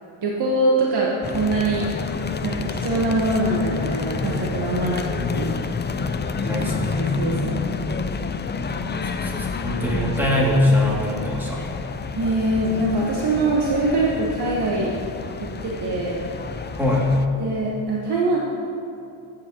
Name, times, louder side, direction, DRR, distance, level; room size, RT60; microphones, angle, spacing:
voice 1, 0.2-1.9 2.4-5.0 5.3-5.5 6.9-7.7 12.1-14.9 15.6-16.2 17.4-18.4, right 2 dB, 55° right, -3 dB, 1.3 m, -23 dB
sound 1, 1.2-17.3, left 4 dB, 25° left, 0.4 m, -29 dB
voice 2, 6.4-7.1 9.2-11.6 16.8-17.1, left 1 dB, 5° right, -6 dB, 2.4 m, -22 dB
14.0 x 8.9 x 2.9 m, 2.6 s
cardioid pair, 120°, 48 cm